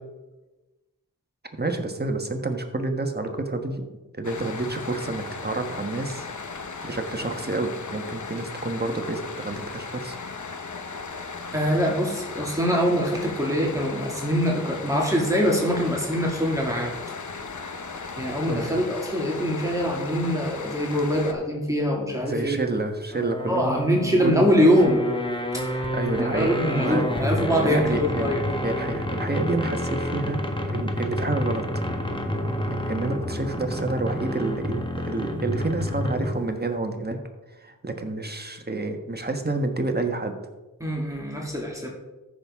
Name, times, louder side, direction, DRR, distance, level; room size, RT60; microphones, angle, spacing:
voice 1, 1.6-3.8 4.1-6.3 6.8-10.2 18.5-18.7 22.2-23.8 24.2-24.5 25.9-26.5 26.8-27.3 27.6-28.3 28.6-31.7 32.8-37.2 37.5-40.3, right 2 dB, 30° right, 5 dB, 1.4 m, -29 dB
sound 1, 4.2-21.3, left 4 dB, 55° left, 1.0 m, -37 dB
voice 2, 11.5-16.9 18.2-22.6 23.5-25.0 25.5-25.8 26.2-28.4 40.8-41.9, equal, 10° right, -2 dB, 2.3 m, -23 dB
sound 2, 23.1-36.5, left 1 dB, 15° left, 1.3 m, -29 dB
14.0 x 6.3 x 3.6 m, 1.1 s
cardioid pair, 55°, 35 cm